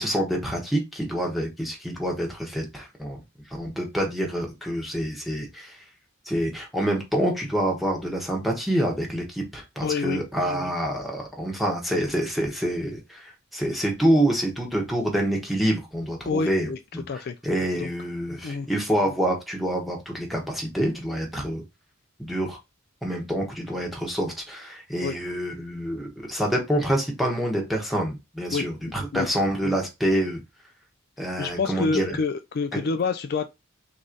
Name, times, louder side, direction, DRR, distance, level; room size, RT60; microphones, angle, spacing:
voice 1, 0.0-3.2 3.5-5.8 6.2-21.6 22.2-22.6 23.0-30.4 31.2-32.2 32.7-32.8, right 1 dB, ahead, 1.3 m, -27 dB
voice 2, 9.8-10.2 16.3-16.8 17.1-17.3 17.8-17.9 18.4-18.7 25.0-25.1 28.5-28.7 29.1-29.3 31.4-33.5, left 4 dB, 50° left, 0.4 m, -27 dB
3.9 x 3.1 x 3.9 m
head